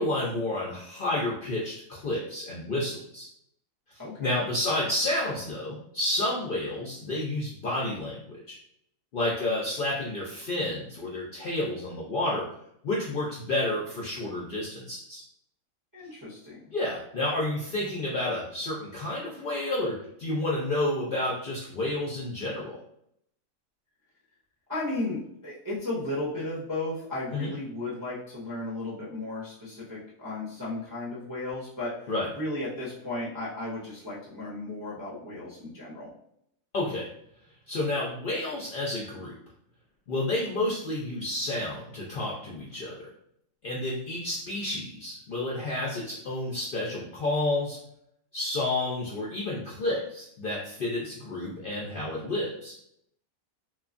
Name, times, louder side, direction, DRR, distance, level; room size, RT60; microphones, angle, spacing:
voice 1, 0.0-3.3 4.2-8.6 9.1-12.4 12.8-15.2 16.7-22.8 27.3-27.5 32.1-32.3 36.7-37.1 37.7-39.3 40.1-43.1 43.6-47.8 48.3-52.8, left 1 dB, 65° left, -4 dB, 0.5 m, -30 dB
voice 2, 4.0-4.3 15.9-16.6 24.7-36.1, left 2 dB, 30° right, -7 dB, 0.4 m, -35 dB
3.0 x 2.2 x 2.4 m, 0.73 s
omnidirectional pair, 1.4 m